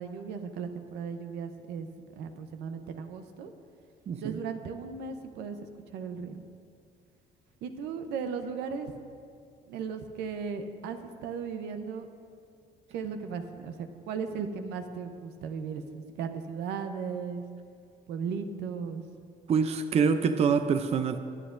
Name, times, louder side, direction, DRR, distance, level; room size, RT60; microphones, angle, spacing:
voice 1, 0.0-1.9 2.2-3.5 4.2-5.6 5.9-6.4 7.6-8.9 9.7-12.1 12.9-17.4 18.1-19.0, right 6 dB, 85° right, 0.8 m, -36 dB
voice 2, 4.1-4.4 19.5-21.2, right 6 dB, 40° right, 0.5 m, -25 dB
20.5 x 8.2 x 2.6 m
cardioid pair, 110°, 17 cm